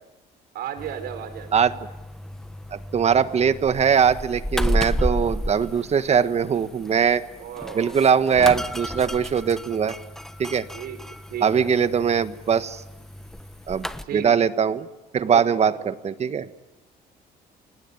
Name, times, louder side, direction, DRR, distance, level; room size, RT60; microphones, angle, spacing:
voice 1, 0.5-1.5 7.4-8.0 10.7-11.0 11.3-11.7 14.0-14.5 15.3-15.7, right 9 dB, 70° right, 9 dB, 4.6 m, -34 dB
sound 1, 0.8-14.0, equal, 5° left, 1.2 m, -32 dB
voice 2, 2.7-7.2 7.7-9.9 10.4-10.6 11.4-12.8 13.7-13.9 14.1-14.9 15.1-16.5, right 7 dB, 40° right, 12 dB, 1.4 m, -21 dB
29.0 x 19.5 x 9.7 m, 1.0 s
cardioid pair, 110°, 17 cm